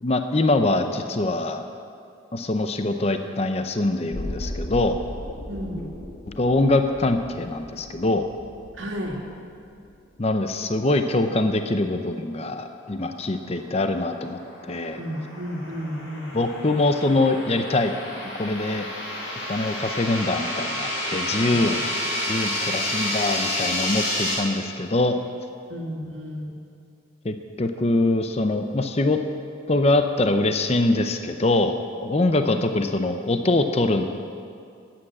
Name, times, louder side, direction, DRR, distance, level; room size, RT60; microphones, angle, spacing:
voice 1, 0.0-1.6 2.3-5.0 6.4-8.2 10.2-14.4 14.7-15.0 16.3-18.0 18.4-18.9 19.5-21.8 22.3-25.2 27.2-29.2 29.7-31.8 32.0-34.0, left 2 dB, 30° left, 7 dB, 0.6 m, -23 dB
sound 1, 4.1-10.1 10.4-10.5, left 1 dB, 55° left, 4.1 m, -37 dB
voice 2, 5.5-5.9 8.7-9.2 15.0-16.4 25.7-26.5 32.3-32.5, equal, 70° right, 1 dB, 2.0 m, -33 dB
sound 2, 13.9-24.3, left 1 dB, 75° left, 3.8 m, -30 dB
12.5 x 8.8 x 8.5 m, 2.4 s
head